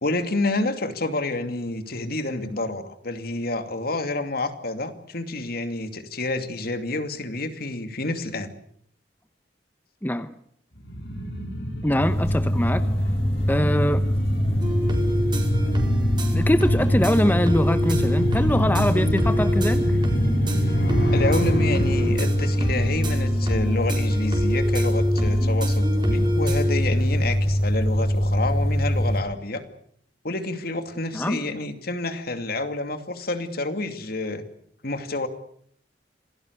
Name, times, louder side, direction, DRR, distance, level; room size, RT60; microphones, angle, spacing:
voice 1, 0.0-8.5 21.1-29.6 30.2-34.4 34.8-35.3, left 2 dB, 55° left, 8 dB, 2.6 m, -29 dB
voice 2, 10.0-10.3 11.8-12.8 13.5-14.0 16.3-19.8 31.1-31.4, left 1 dB, 10° left, 10 dB, 0.9 m, -23 dB
sound 1, 10.8-24.0 24.3-24.4, equal, 75° left, 4.7 m, -28 dB
sound 2, 12.0-29.2, equal, 35° left, 4.6 m, -23 dB
sound 3, 14.6-26.8, equal, 25° right, 4.6 m, -29 dB
27.0 x 18.0 x 8.2 m, 0.65 s
head